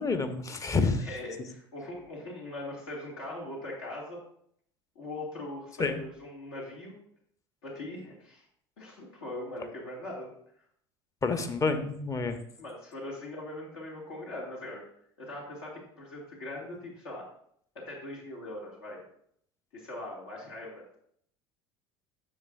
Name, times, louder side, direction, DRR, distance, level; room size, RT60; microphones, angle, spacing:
voice 1, 0.0-1.1 5.8-6.0 11.2-12.4, left 4 dB, 25° left, 8 dB, 1.0 m, -28 dB
voice 2, 1.0-4.2 5.0-6.9 7.6-8.4 8.8-10.3 12.6-14.8 15.2-17.3 17.7-19.0 19.7-21.0, left 1 dB, 65° left, -4 dB, 2.3 m, -41 dB
9.9 x 6.9 x 2.5 m, 0.66 s
figure-of-eight pair, 65°, 14 cm